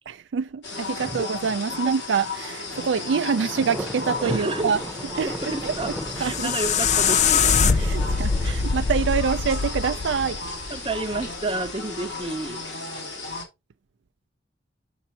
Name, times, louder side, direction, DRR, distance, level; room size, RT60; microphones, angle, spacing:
voice 1, 0.1-4.8 5.2-6.5 7.8-10.4, right 6 dB, 70° right, 0.4 m, -26 dB
sound 1, 0.6-13.4, left 3 dB, 65° left, 2.7 m, -35 dB
Thunder, 2.7-12.5, equal, ahead, 0.9 m, -36 dB
voice 2, 4.2-4.7 5.2-5.9 6.2-7.9 8.4-8.6 10.7-12.6, right 2 dB, 25° right, 0.6 m, -30 dB
sound 2, 5.9-11.0, left 6 dB, 40° left, 0.4 m, -23 dB
7.1 x 6.8 x 2.8 m
head